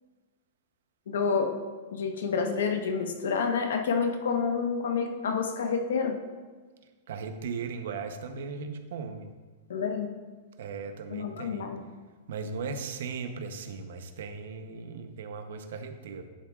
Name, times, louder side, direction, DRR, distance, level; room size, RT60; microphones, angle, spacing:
voice 1, 1.1-1.6 1.9-6.2 9.7-10.1 11.1-11.8, left 5 dB, 90° left, 5 dB, 1.1 m, -28 dB
voice 2, 7.1-9.3 10.6-11.7 12.3-16.2, right 5 dB, 75° right, 8 dB, 0.8 m, -37 dB
10.5 x 8.3 x 2.4 m, 1.4 s
supercardioid pair, 155°, 0 cm